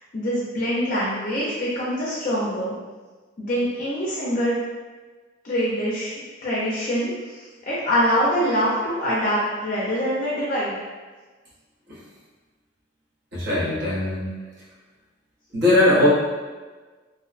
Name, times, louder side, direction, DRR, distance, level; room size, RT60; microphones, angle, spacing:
voice 1, 0.1-2.8 3.4-4.6 5.4-7.4 7.7-10.7, equal, 40° left, -7 dB, 0.4 m, -24 dB
voice 2, 13.3-14.3 15.5-16.1, left 1 dB, 55° right, -8 dB, 0.8 m, -19 dB
2.6 x 2.0 x 2.4 m, 1.3 s
head